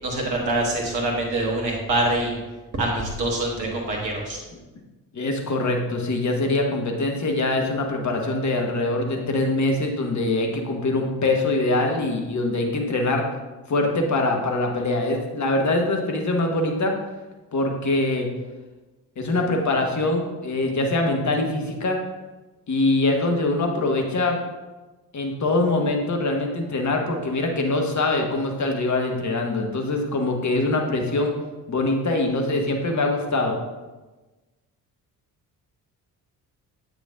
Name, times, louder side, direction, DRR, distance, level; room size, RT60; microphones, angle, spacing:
voice 1, 0.0-2.4 2.7-4.4, right 1 dB, 85° right, -1 dB, 1.4 m, -25 dB
voice 2, 5.1-13.2 13.7-16.9 17.5-18.3 19.2-22.0 22.7-24.4 25.1-31.3 31.7-33.5, left 2 dB, 35° left, 2 dB, 1.4 m, -23 dB
8.2 x 6.3 x 2.6 m, 1.2 s
figure-of-eight pair, 45°, 49 cm